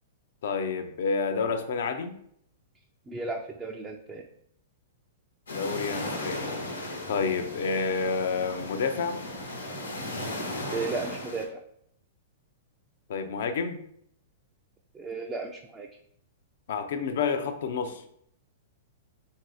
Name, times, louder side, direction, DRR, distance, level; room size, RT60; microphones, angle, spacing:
voice 1, 0.4-2.2 5.5-6.6 7.1-9.2 13.1-13.8 16.7-18.0, left 5 dB, 60° left, 8 dB, 0.6 m, -29 dB
voice 2, 3.1-4.3 10.7-11.6 14.9-15.9, right 3 dB, 20° right, 1 dB, 0.5 m, -34 dB
sound 1, 5.5-11.5, left 1 dB, 80° left, 1.1 m, -36 dB
3.8 x 2.8 x 4.7 m, 0.69 s
figure-of-eight pair, 105°, 0 cm